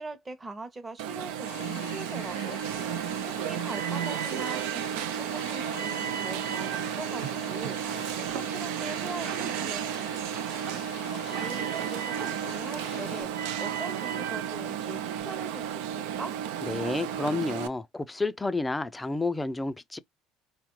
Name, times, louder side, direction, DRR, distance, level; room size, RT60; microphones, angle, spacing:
voice 1, 0.0-2.6 3.4-7.8 8.2-10.3 11.1-16.3, right 3 dB, 15° right, 0.8 m, -42 dB
Alarm, 1.0-17.7, right 9 dB, 90° right, 0.5 m, -33 dB
Stream, 1.5-13.2, left 12 dB, 65° left, 0.6 m, -45 dB
sound 1, 7.2-15.2, right 8 dB, 65° right, 1.0 m, -44 dB
voice 2, 16.6-20.0, left 3 dB, 10° left, 0.4 m, -30 dB
4.1 x 2.3 x 3.0 m
cardioid pair, 150°, 0 cm